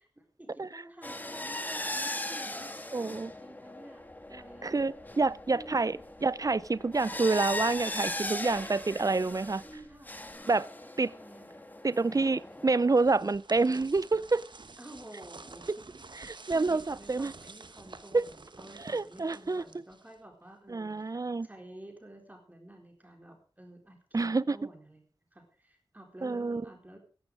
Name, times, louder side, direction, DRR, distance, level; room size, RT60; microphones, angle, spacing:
voice 1, 0.4-4.0 4.3-4.8 5.5-6.0 9.6-10.3 10.8-11.6 14.8-15.9 16.2-27.0, right 1 dB, 20° right, 4.1 m, -51 dB
sound 1, 1.0-9.8 10.0-13.1, left 1 dB, 20° left, 1.8 m, -39 dB
voice 2, 2.9-3.3 4.6-9.6 10.5-10.7 11.0-11.1 11.8-14.4 15.7-15.8 16.2-17.3 18.1-18.3 18.8-19.6 20.7-21.5 24.1-24.6 26.2-26.6, right 3 dB, 40° right, 0.5 m, -28 dB
sound 2, 4.0-10.3, left 1 dB, 45° left, 6.0 m, -61 dB
sound 3, 12.5-20.3, right 3 dB, 60° right, 1.2 m, -50 dB
15.5 x 11.5 x 4.8 m
wide cardioid pair, 65°, 9 cm